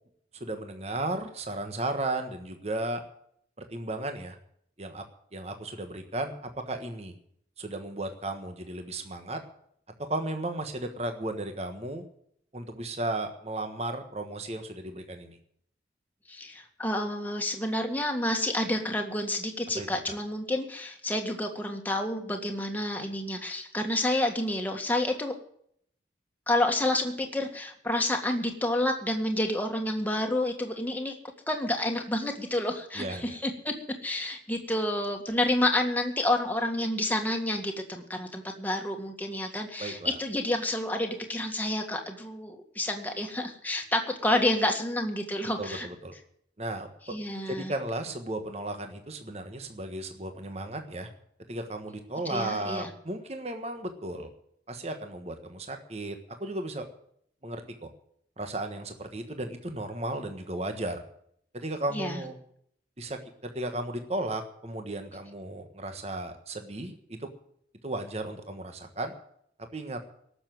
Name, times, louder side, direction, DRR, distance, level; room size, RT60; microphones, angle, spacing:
voice 1, 0.4-3.0 3.6-4.4 4.8-5.0 5.3-7.1 7.6-9.4 10.0-12.0 12.5-15.4 19.8-20.1 32.9-33.4 39.8-40.1 45.6-46.1 46.6-46.9 47.5-51.1 51.5-54.3 54.7-56.9 57.4-57.9 58.4-61.0 61.5-62.4 63.0-67.3 67.8-69.1 69.6-70.0, right 2 dB, 35° right, 6 dB, 1.4 m, -35 dB
voice 2, 16.3-25.4 26.5-31.1 31.5-33.7 34.0-45.9 47.1-47.7 52.3-52.9 61.9-62.2, left 1 dB, 10° left, 3 dB, 1.8 m, -29 dB
18.0 x 7.0 x 9.3 m, 0.67 s
head